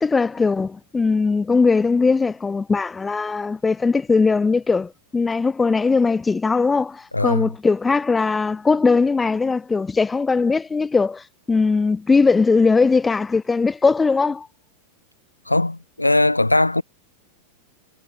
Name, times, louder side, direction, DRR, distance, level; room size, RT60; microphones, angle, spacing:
voice 1, 0.0-14.5, left 4 dB, 15° left, 0.4 m, -19 dB
voice 2, 7.1-7.5 15.5-16.8, left 2 dB, 85° left, 0.8 m, -19 dB
figure-of-eight pair, 90°, 0 cm